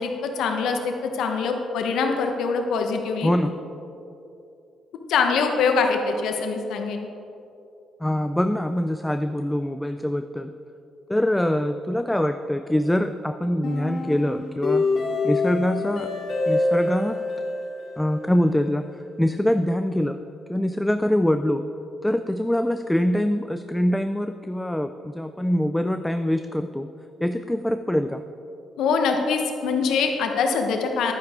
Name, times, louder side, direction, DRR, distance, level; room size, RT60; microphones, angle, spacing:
voice 1, 0.0-3.3 5.1-7.1 28.8-31.1, left 5 dB, 80° left, 4 dB, 1.0 m, -24 dB
voice 2, 8.0-10.6 11.1-14.9 15.2-16.1 16.5-17.2 18.0-18.8 19.2-20.2 20.5-21.7 22.0-26.9 27.2-28.2, left 1 dB, 5° left, 9 dB, 0.3 m, -24 dB
sound 1, 13.6-18.7, left 2 dB, 55° left, 2.4 m, -26 dB
10.5 x 9.7 x 3.6 m, 2.8 s
cardioid pair, 90°, 0 cm